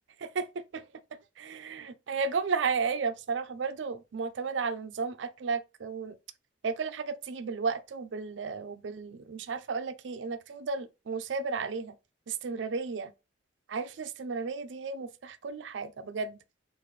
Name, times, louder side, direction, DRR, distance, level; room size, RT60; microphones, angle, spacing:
voice 1, 0.2-0.8 1.4-6.2 6.6-12.0 12.3-13.1 13.7-16.4, right 5 dB, 80° right, 0.5 m, -33 dB
4.0 x 2.5 x 3.2 m
head